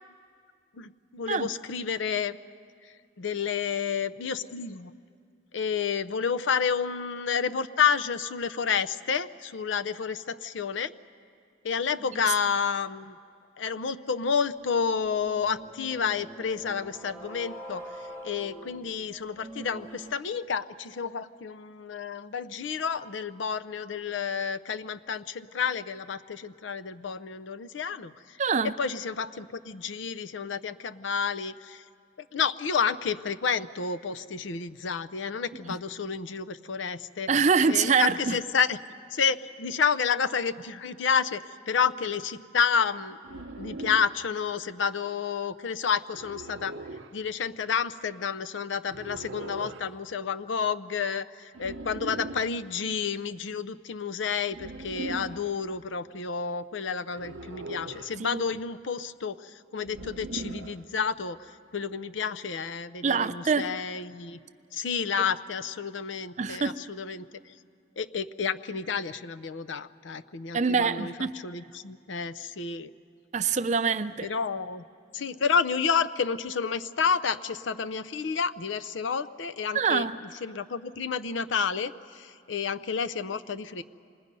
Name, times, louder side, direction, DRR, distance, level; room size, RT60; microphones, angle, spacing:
voice 1, 0.7-2.3 3.2-4.9 5.5-10.9 11.6-13.2 13.6-17.9 18.2-28.1 28.6-31.8 32.3-37.3 37.7-38.8 39.1-46.7 47.1-61.4 61.7-64.4 64.7-67.3 68.0-72.9 74.2-74.8 75.1-83.8, left 6 dB, 80° left, 0.6 m, -30 dB
sound 1, 14.9-20.1, right 1 dB, 15° left, 1.4 m, -44 dB
voice 2, 28.4-28.7 37.3-38.4 58.2-58.4 63.0-63.7 66.4-66.7 70.5-71.3 73.3-74.3 79.7-80.2, right 5 dB, 40° right, 0.5 m, -25 dB
sound 2, 43.2-44.2 46.1-47.1 48.9-49.9 51.5-52.5 54.5-55.5 57.1-58.2 59.8-60.8, right 2 dB, 80° right, 0.7 m, -39 dB
27.0 x 20.5 x 5.4 m
head